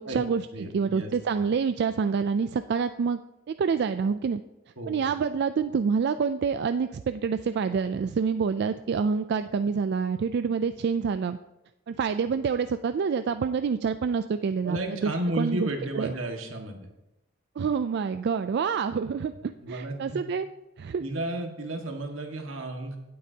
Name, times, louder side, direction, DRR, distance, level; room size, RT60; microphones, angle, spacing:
voice 1, 0.0-3.2 3.5-4.4 4.9-11.4 11.9-14.8 15.0-15.1 15.4-15.7 15.9-16.1 17.6-20.5 20.8-21.0, right 6 dB, 55° right, 10 dB, 0.3 m, -27 dB
voice 2, 0.5-1.1 1.3-1.4 4.8-5.1 14.6-16.9 19.6-20.2 21.0-23.0, right 1 dB, 85° right, 3 dB, 1.7 m, -33 dB
16.5 x 8.5 x 2.8 m, 0.95 s
head